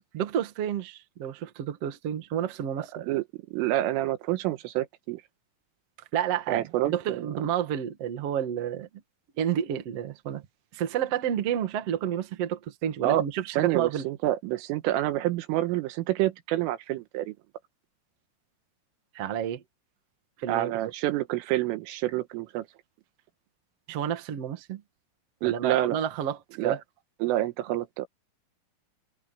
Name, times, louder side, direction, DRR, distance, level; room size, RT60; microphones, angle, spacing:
voice 1, 0.1-3.0 6.1-8.9 9.4-10.4 10.7-14.0 19.1-19.6 20.4-20.7 23.9-24.8 25.4-26.8, right 9 dB, 55° right, 1.8 m, -30 dB
voice 2, 2.8-5.2 6.5-7.3 13.0-13.3 13.6-17.4 20.5-22.7 25.4-26.0 26.6-26.8 27.2-28.1, right 14 dB, 85° right, 3.8 m, -28 dB
omnidirectional pair, 5.7 m